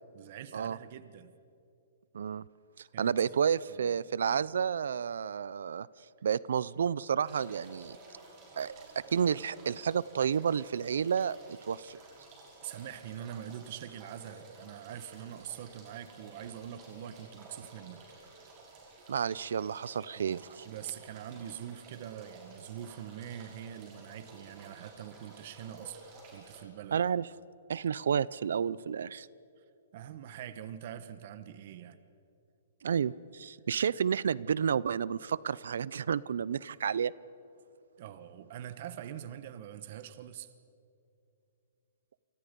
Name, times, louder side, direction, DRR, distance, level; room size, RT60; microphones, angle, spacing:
voice 1, 0.1-1.4 2.9-3.4 3.7-3.9 12.6-18.0 20.2-26.0 26.3-27.0 29.6-29.7 29.9-32.0 38.0-40.5, right 10 dB, 45° right, 12 dB, 1.3 m, -44 dB
voice 2, 3.0-5.9 6.2-8.0 8.6-11.4 11.7-12.0 19.1-20.7 26.9-27.3 27.7-29.3 32.8-37.1, right 7 dB, 80° right, 21 dB, 0.5 m, -31 dB
sound 1, 7.3-26.6, right 3 dB, 25° right, 6.2 m, -53 dB
29.0 x 24.5 x 5.4 m, 2.7 s
hypercardioid pair, 160°, 0 cm